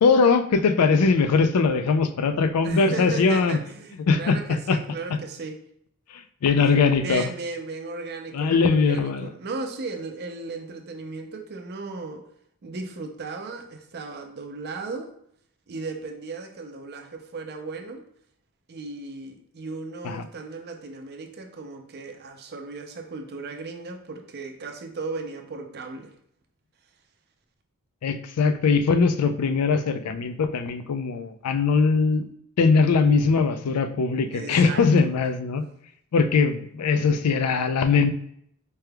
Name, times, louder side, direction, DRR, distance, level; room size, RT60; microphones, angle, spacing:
voice 1, 0.0-3.6 4.1-4.8 5.1-5.2 6.1-7.3 8.3-9.3 20.0-20.2 28.0-32.3 32.6-35.6 36.1-38.1, left 4 dB, 80° left, 9 dB, 0.4 m, -21 dB
voice 2, 2.6-5.6 6.7-12.2 12.6-15.1 15.7-18.0 18.7-26.1 34.3-35.1, right 3 dB, 45° right, 5 dB, 0.5 m, -36 dB
4.5 x 3.3 x 2.2 m, 0.68 s
head